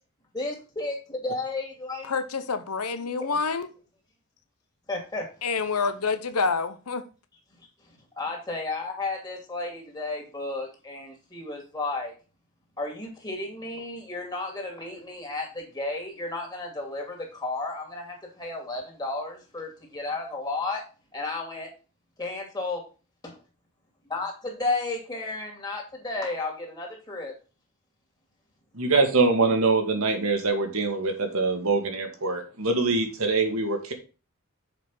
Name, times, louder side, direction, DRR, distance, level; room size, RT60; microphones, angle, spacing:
voice 1, 0.3-2.1 3.2-3.4 4.9-5.3 7.6-7.7 8.2-12.1 12.8-20.8 21.1-21.7 22.2-22.8 23.2-23.4 24.1-27.3, left 2 dB, 20° left, 2.4 m, -33 dB
voice 2, 2.1-3.7 5.4-7.0, left 4 dB, 90° left, 0.9 m, -27 dB
voice 3, 28.7-33.9, right 3 dB, 70° right, 1.7 m, -24 dB
6.7 x 5.1 x 5.5 m
head